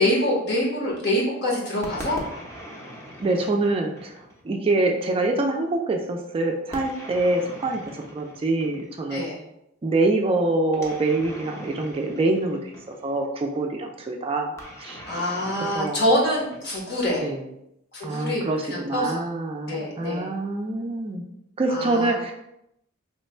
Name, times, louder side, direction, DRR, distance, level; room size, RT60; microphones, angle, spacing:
voice 1, 0.0-2.2 9.1-9.4 15.1-17.3 17.9-19.3 19.7-20.3 21.7-22.1, left 1 dB, 55° left, -4 dB, 1.1 m, -25 dB
sound 1, 1.8-4.5 6.7-9.1 10.7-13.2 14.6-17.0, equal, 15° left, 0.6 m, -41 dB
voice 2, 3.2-9.2 9.8-15.0 15.7-16.0 17.2-17.4 18.0-21.2 21.6-22.3, right 2 dB, 25° right, 2 dB, 0.3 m, -25 dB
3.1 x 2.2 x 4.2 m, 0.81 s
head